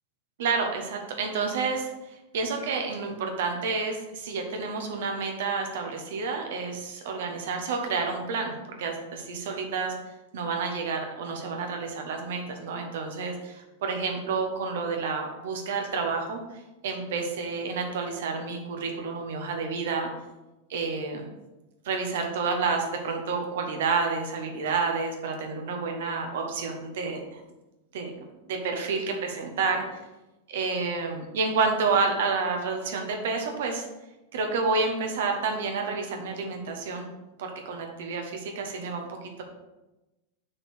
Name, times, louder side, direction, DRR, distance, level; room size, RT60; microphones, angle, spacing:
voice 1, 0.4-10.0 10.3-20.1 20.7-21.3 21.8-27.4 27.9-28.1 28.5-30.0 30.5-33.9 34.3-37.1 37.4-39.4, right 4 dB, 55° right, 3 dB, 1.3 m, -29 dB
6.3 x 4.5 x 6.3 m, 1.0 s
figure-of-eight pair, 90°, 0 cm